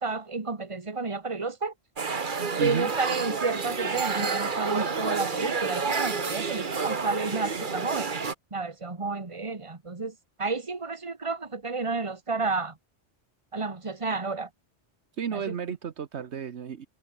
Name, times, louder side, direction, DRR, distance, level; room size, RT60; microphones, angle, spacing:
voice 1, 0.0-1.7 2.6-8.1 8.5-12.7 13.5-14.5 15.3-15.4, right 4 dB, 25° right, 1.7 m, -31 dB
sound 1, 2.0-8.3, right 5 dB, 45° right, 1.5 m, -29 dB
voice 2, 2.6-2.9 15.2-16.9, right 7 dB, 70° right, 1.3 m, -32 dB
omnidirectional pair, 1.2 m